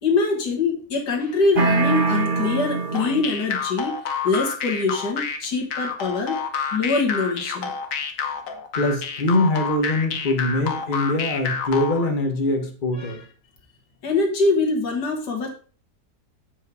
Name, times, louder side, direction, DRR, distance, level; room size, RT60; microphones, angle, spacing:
voice 1, 0.0-6.4 6.7-7.7 13.0-13.3 14.0-15.5, left 3 dB, 85° left, 0 dB, 2.3 m, -24 dB
sound 1, 1.6-3.5, right 3 dB, 35° right, 1.2 m, -23 dB
sound 2, 2.9-12.1, left 6 dB, 55° left, 1.3 m, -29 dB
voice 2, 8.7-13.2, left 2 dB, 30° left, 5 dB, 1.4 m, -23 dB
7.6 x 5.5 x 4.8 m, 0.41 s
omnidirectional pair, 1.8 m